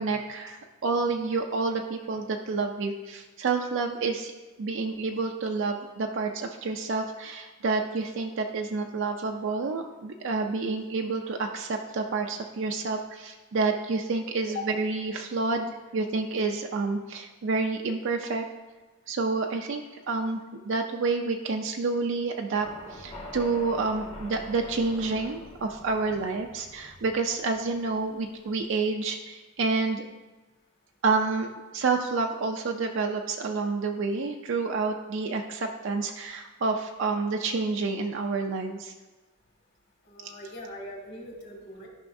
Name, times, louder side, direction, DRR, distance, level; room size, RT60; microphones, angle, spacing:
voice 1, 0.0-4.3 4.6-18.4 19.1-20.4 20.6-30.0 31.0-38.9 40.2-40.3, right 4 dB, 60° right, 3 dB, 0.4 m, -29 dB
sound 1, 22.5-28.6, left 1 dB, 25° left, 0.9 m, -45 dB
voice 2, 40.0-41.9, left 2 dB, 50° left, -1 dB, 1.9 m, -40 dB
12.5 x 5.5 x 2.6 m, 1.2 s
head